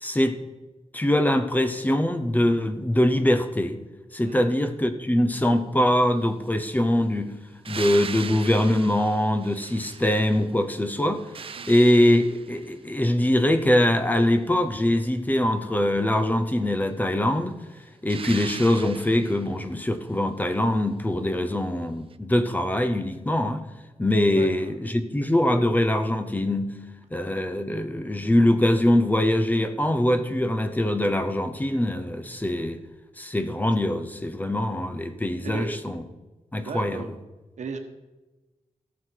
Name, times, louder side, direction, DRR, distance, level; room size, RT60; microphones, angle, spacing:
voice 1, 0.0-0.4 0.9-3.8 4.1-7.3 7.7-11.2 11.7-17.6 18.0-23.6 24.0-26.7 27.1-32.8 33.2-36.0 36.5-37.0, left 1 dB, 15° left, 8 dB, 0.8 m, -23 dB
voice 2, 4.2-4.5 11.5-11.8 24.3-24.7 35.4-35.8 36.6-37.1 37.6-37.8, right 5 dB, 85° right, 5 dB, 1.3 m, -36 dB
sound 1, 7.7-10.6 11.0-12.7 18.1-19.5 22.1-22.2, right 6 dB, 50° right, 0.5 m, -39 dB
16.5 x 6.6 x 4.6 m, 1.1 s
wide cardioid pair, 145°, 12 cm